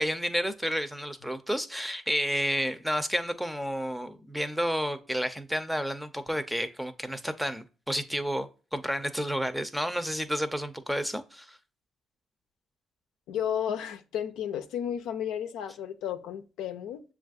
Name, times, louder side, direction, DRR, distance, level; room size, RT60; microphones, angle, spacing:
voice 1, 0.0-11.6, equal, 5° right, 0.6 m, -31 dB
voice 2, 13.3-17.0, left 9 dB, 85° left, 0.4 m, -33 dB
7.1 x 2.4 x 2.5 m
supercardioid pair, 65°, 0 cm